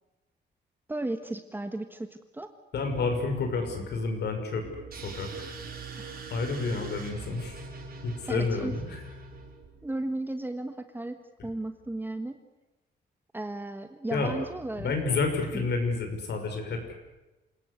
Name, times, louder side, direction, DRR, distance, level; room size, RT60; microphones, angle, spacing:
voice 1, 0.9-2.5 8.3-8.8 9.8-12.4 13.3-14.9 15.5-15.7, right 2 dB, 10° right, 7 dB, 1.5 m, -35 dB
voice 2, 2.7-5.6 6.3-7.6 8.0-9.0 14.1-14.3 14.8-16.8, left 3 dB, 70° left, 4 dB, 6.2 m, -30 dB
sound 1, 4.6-10.0, right 7 dB, 75° right, 2.8 m, -47 dB
sound 2, 4.9-9.7, right 3 dB, 55° right, 5.6 m, -44 dB
28.0 x 18.5 x 8.1 m, 1.1 s
cardioid pair, 145°, 18 cm